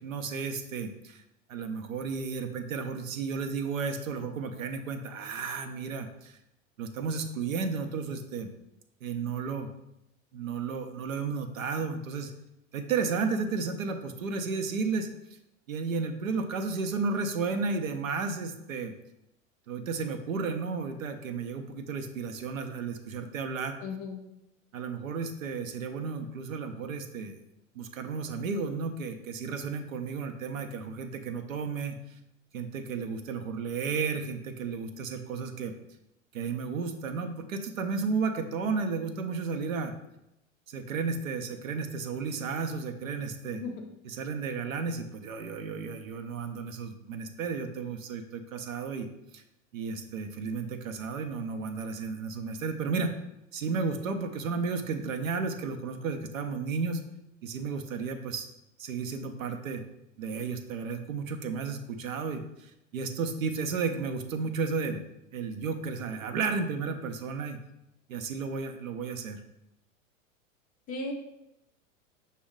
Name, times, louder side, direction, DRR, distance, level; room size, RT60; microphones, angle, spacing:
voice 1, 0.0-1.2 1.5-6.4 6.8-8.5 9.0-9.7 10.3-12.3 12.7-15.1 15.7-18.9 19.7-23.8 24.7-27.4 27.7-32.0 32.5-35.7 36.3-39.9 40.7-43.6 44.2-49.1 49.3-49.4 49.7-53.2 53.5-57.0 57.4-58.5 58.8-59.8 60.2-65.0 65.3-67.6 68.1-69.4, right 5 dB, 75° right, 7 dB, 0.6 m, -33 dB
voice 2, 23.8-24.2 43.5-43.9 70.9-71.1, left 3 dB, 20° left, 2 dB, 0.4 m, -36 dB
6.0 x 2.2 x 3.6 m, 0.87 s
figure-of-eight pair, 95°, 41 cm